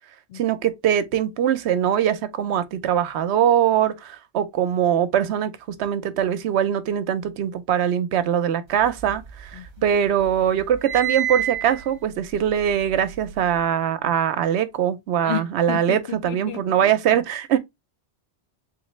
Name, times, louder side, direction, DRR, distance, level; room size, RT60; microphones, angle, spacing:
voice 1, 0.3-17.6, right 9 dB, 75° right, 0.8 m, -22 dB
sound 1, 8.8-9.9 10.2-13.6, right 10 dB, 45° right, 0.9 m, -30 dB
voice 2, 15.7-16.8, left 10 dB, 65° left, 0.8 m, -31 dB
3.7 x 3.2 x 3.0 m
omnidirectional pair, 1.2 m